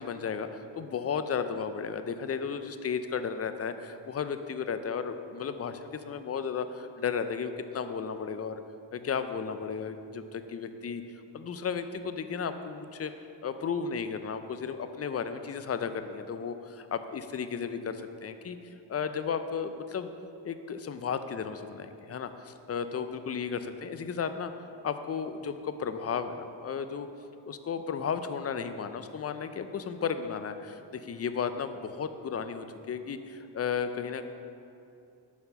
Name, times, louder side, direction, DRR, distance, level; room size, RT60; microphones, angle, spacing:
voice 1, 0.0-8.6 8.9-11.0 11.3-13.1 13.4-18.6 18.9-20.1 20.4-24.5 24.8-27.1 27.5-34.3, left 6 dB, 35° left, 10 dB, 0.4 m, -34 dB
6.9 x 4.3 x 5.4 m, 2.7 s
cardioid pair, 65°, 47 cm